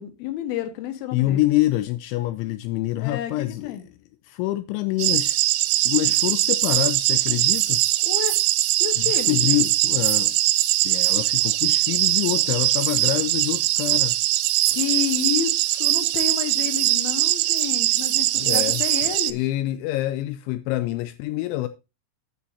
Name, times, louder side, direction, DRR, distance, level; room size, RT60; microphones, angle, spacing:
voice 1, 0.0-1.4 3.0-3.8 8.0-8.4 8.8-9.4 14.7-19.5, left 10 dB, 70° left, 2.5 m, -30 dB
voice 2, 1.1-3.8 4.2-5.4 5.9-7.9 9.0-10.4 10.8-14.2 18.4-18.8 19.3-21.7, left 16 dB, 85° left, 2.6 m, -26 dB
sound 1, 5.0-19.3, right 17 dB, 85° right, 3.2 m, -21 dB
11.0 x 8.4 x 2.7 m
omnidirectional pair, 5.9 m